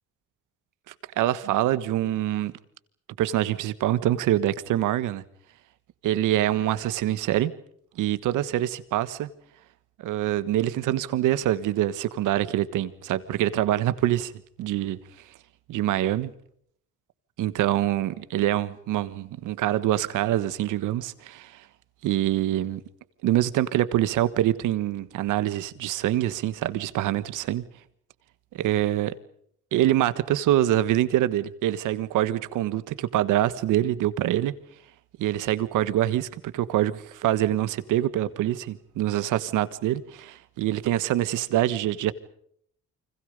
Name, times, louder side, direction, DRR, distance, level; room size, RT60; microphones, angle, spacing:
voice 1, 1.2-2.5 3.2-5.2 6.0-7.5 8.0-9.3 10.0-14.3 14.6-15.0 15.7-16.3 17.4-21.6 22.0-22.8 23.2-27.6 28.5-29.1 29.7-34.5 35.2-42.1, right 13 dB, 90° right, 1.5 m, -25 dB
29.5 x 25.0 x 5.3 m
cardioid pair, 90°, 30 cm